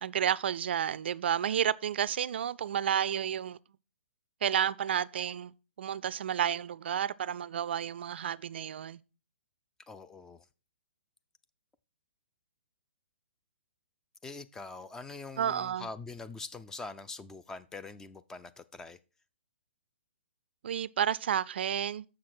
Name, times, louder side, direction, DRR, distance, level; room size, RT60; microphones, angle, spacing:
voice 1, 0.0-3.6 4.4-5.5 5.8-9.0 15.4-15.9 20.6-22.0, right 9 dB, 65° right, 0.4 m, -31 dB
voice 2, 9.9-10.4 14.2-19.0, left 3 dB, 10° left, 0.3 m, -44 dB
6.9 x 5.9 x 4.8 m
hypercardioid pair, 135°, 6 cm